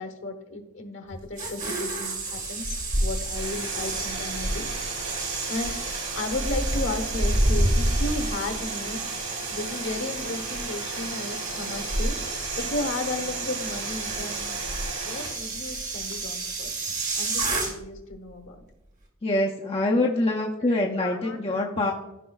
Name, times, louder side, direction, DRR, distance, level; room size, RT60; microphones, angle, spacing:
voice 1, 0.0-4.7 5.5-14.6 15.0-18.6 20.6-20.7 21.0-21.7, left 2 dB, 60° left, 6 dB, 1.0 m, -34 dB
sound 1, 1.1-18.0 18.3-18.6, right 4 dB, 35° right, 1.2 m, -33 dB
sound 2, 2.6-3.5 3.8-4.9 5.5-5.9 6.3-8.7 11.7-12.9 14.0-14.2 14.6-15.0 16.0-16.1, equal, 20° right, 0.7 m, -27 dB
sound 3, 3.3-15.3, right 3 dB, 80° right, 2.2 m, -36 dB
voice 2, 19.2-21.9, left 2 dB, 25° left, -1 dB, 0.5 m, -25 dB
14.0 x 5.1 x 2.3 m, 0.94 s
head